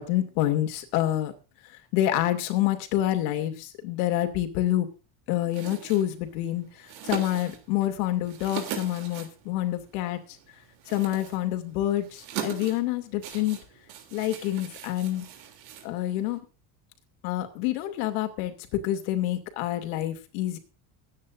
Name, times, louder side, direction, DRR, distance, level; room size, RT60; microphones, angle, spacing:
voice 1, 0.0-1.3 1.9-4.9 5.3-6.7 7.0-10.2 10.9-13.6 14.1-15.2 15.8-16.4 17.2-20.6, left 13 dB, 90° left, 7 dB, 2.7 m, -27 dB
sound 1, 5.5-16.4, right 9 dB, 90° right, 3.2 m, -41 dB
22.5 x 9.5 x 2.6 m, 0.33 s
cardioid pair, 150°, 42 cm